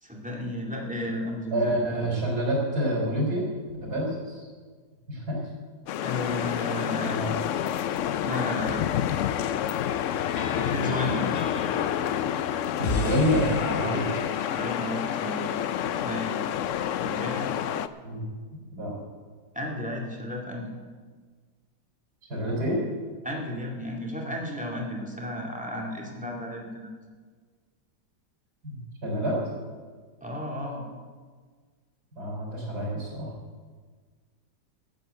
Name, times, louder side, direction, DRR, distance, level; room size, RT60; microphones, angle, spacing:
voice 1, 0.0-1.8 6.0-7.2 8.2-8.8 10.5-11.3 13.8-14.1 14.5-15.5 15.9-16.4 17.0-17.5 19.5-20.7 23.2-26.9 30.2-30.8, left 1 dB, 5° right, -2 dB, 2.2 m, -33 dB
voice 2, 1.5-3.4 3.8-4.5 5.1-5.4 6.9-7.4 12.8-14.1 18.0-18.3 18.7-19.0 22.3-22.8 28.6-28.8 29.0-29.4 32.2-33.3, equal, 65° right, -2 dB, 4.4 m, -27 dB
sound 1, 5.9-17.9, left 10 dB, 75° left, 0.7 m, -28 dB
sound 2, 9.8-16.0, left 4 dB, 35° left, 0.7 m, -37 dB
13.0 x 8.0 x 8.2 m, 1.5 s
omnidirectional pair, 1.8 m